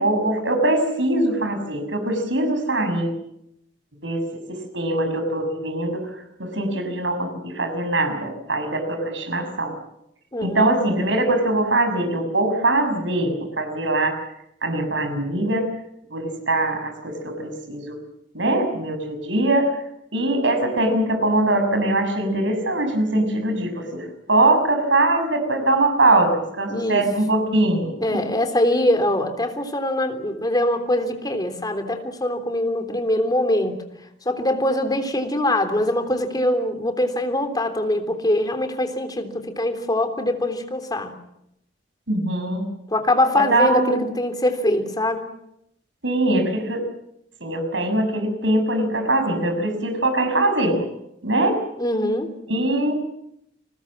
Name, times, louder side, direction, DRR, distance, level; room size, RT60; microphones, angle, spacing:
voice 1, 0.0-3.1 4.0-6.1 6.4-9.7 10.4-14.1 14.6-15.7 16.1-18.0 18.3-19.7 20.1-28.2 42.1-42.6 43.3-44.1 46.0-46.8 47.4-50.8 51.2-51.6 52.5-52.9, right 2 dB, 85° right, 6 dB, 6.6 m, -22 dB
voice 2, 10.3-10.8 26.7-27.0 28.0-33.8 34.2-41.1 42.9-45.3 51.8-52.3, left 1 dB, 20° left, 7 dB, 3.4 m, -23 dB
30.0 x 21.0 x 7.5 m, 0.78 s
head